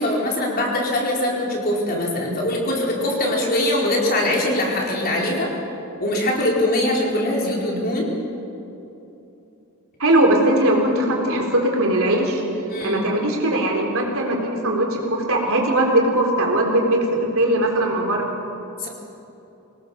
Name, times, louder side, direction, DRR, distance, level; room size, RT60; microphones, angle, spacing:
voice 1, 0.0-5.5 6.0-8.1 12.7-13.0 18.8-18.9, left 1 dB, 45° left, -2 dB, 4.3 m, -22 dB
voice 2, 10.0-12.4 12.8-18.2, right 1 dB, 70° right, 0 dB, 3.9 m, -20 dB
23.5 x 19.0 x 7.1 m, 2.9 s
head